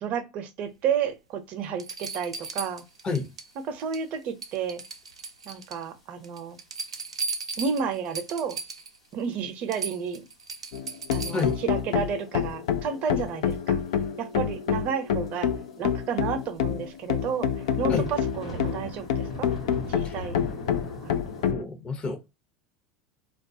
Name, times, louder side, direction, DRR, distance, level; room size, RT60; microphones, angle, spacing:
voice 1, 0.0-2.9 3.7-4.8 5.5-6.6 7.6-8.6 9.1-10.3 11.1-13.8 14.2-15.5 15.8-17.5 17.8-19.5 19.9-20.4 20.7-21.2, right 7 dB, 50° right, 0.6 m, -31 dB
sound 1, 1.1-1.2 1.8-3.5 3.8-4.1 4.4-5.8 6.2-9.0 9.3-9.4 9.7-11.6 13.3-13.4, right 4 dB, 90° right, 0.3 m, -36 dB
sound 2, 2.9-3.0 3.2-3.6 4.3-4.5 5.1-5.2 5.8-5.9 6.2-6.3 6.5-6.6 7.7-8.0 8.4-8.5 9.4-9.5 10.1-10.5 10.8-11.0 11.5-12.2 13.3-13.5 13.9-14.0 14.2-14.3 14.5-14.6 15.3-15.4 15.7-15.8 16.4-21.5, left 1 dB, 90° left, 1.1 m, -40 dB
sound 3, 10.7-21.6, left 8 dB, 70° left, 0.3 m, -27 dB
voice 2, 21.5-22.2, left 4 dB, 35° left, 0.8 m, -29 dB
2.3 x 2.2 x 2.6 m
hypercardioid pair, 75°, 3 cm